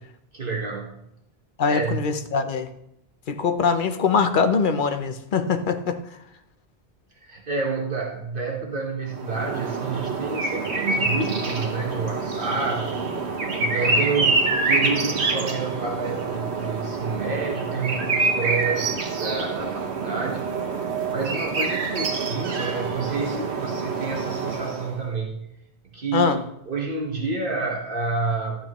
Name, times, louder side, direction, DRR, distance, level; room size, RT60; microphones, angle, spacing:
voice 1, 0.3-1.0 1.6-2.0 7.2-13.0 13.6-20.5 21.1-25.4 25.9-26.4 26.7-28.6, right 4 dB, 55° right, 1.4 m, -29 dB
voice 2, 1.6-2.7 3.3-6.0 26.1-26.4, left 5 dB, 55° left, 0.8 m, -22 dB
sound 1, 9.1-25.0, right 3 dB, 80° right, 1.4 m, -26 dB
12.5 x 8.7 x 3.0 m
omnidirectional pair, 1.1 m